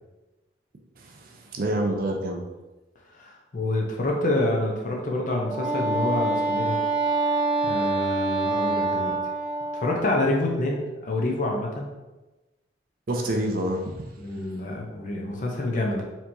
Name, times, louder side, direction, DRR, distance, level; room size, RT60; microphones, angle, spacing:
voice 1, 1.0-2.4 13.1-14.0, right 1 dB, 45° right, 2 dB, 0.4 m, -27 dB
voice 2, 3.1-6.8 7.2-9.2 9.7-11.9 14.2-16.0, left 2 dB, 40° left, 0 dB, 0.6 m, -27 dB
Wind instrument woodwind instrument, 5.4-10.1, right 3 dB, ahead, 0.9 m, -26 dB
4.4 x 2.8 x 2.6 m, 1.1 s
head